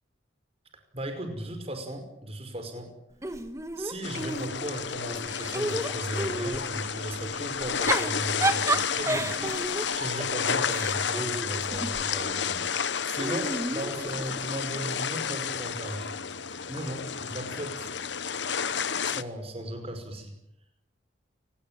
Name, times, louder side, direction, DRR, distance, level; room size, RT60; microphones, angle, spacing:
voice 1, 0.9-2.9 3.8-9.6 9.9-12.7 13.0-16.1 16.7-17.9 19.0-20.3, right 1 dB, 30° right, 7 dB, 5.4 m, -36 dB
Giggle / Chuckle chortle, 3.2-4.8 5.3-6.7 7.6-12.1 13.2-14.6, right 2 dB, 15° right, 1.7 m, -32 dB
sound 1, 4.0-19.2, left 7 dB, 60° left, 1.1 m, -31 dB
29.5 x 19.5 x 9.1 m, 0.85 s
head